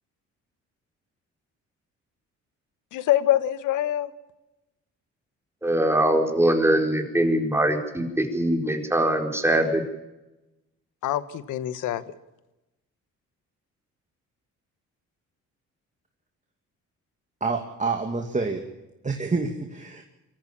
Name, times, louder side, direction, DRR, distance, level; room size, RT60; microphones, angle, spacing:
voice 1, 2.9-4.1 11.0-12.0, left 12 dB, 85° left, 15 dB, 1.3 m, -24 dB
voice 2, 5.6-9.8, right 1 dB, 10° right, 4 dB, 4.5 m, -22 dB
voice 3, 17.4-18.7 19.0-20.0, right 4 dB, 25° right, 3 dB, 2.4 m, -27 dB
24.0 x 14.5 x 8.8 m, 1.0 s
cardioid pair, 90°, 30 cm